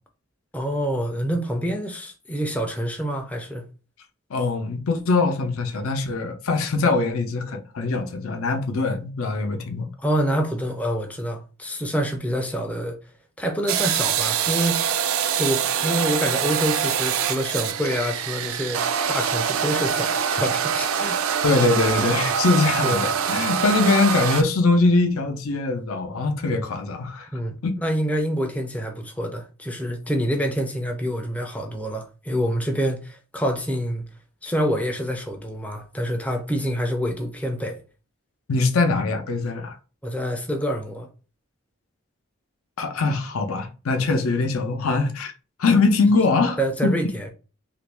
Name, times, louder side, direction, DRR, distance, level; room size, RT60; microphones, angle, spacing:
voice 1, 0.5-3.6 10.0-13.0 13.4-14.8 15.4-18.8 19.1-21.2 21.9-22.0 22.8-23.0 27.3-34.1 34.4-37.8 40.0-41.1 46.6-47.3, equal, 5° left, 0.4 m, -26 dB
voice 2, 4.3-9.9 21.4-27.3 27.6-27.7 38.5-39.8 42.8-45.3 45.6-46.9, left 3 dB, 85° left, 0.5 m, -22 dB
sound 1, 13.7-24.4, right 8 dB, 80° right, 0.4 m, -24 dB
2.9 x 2.5 x 3.3 m
head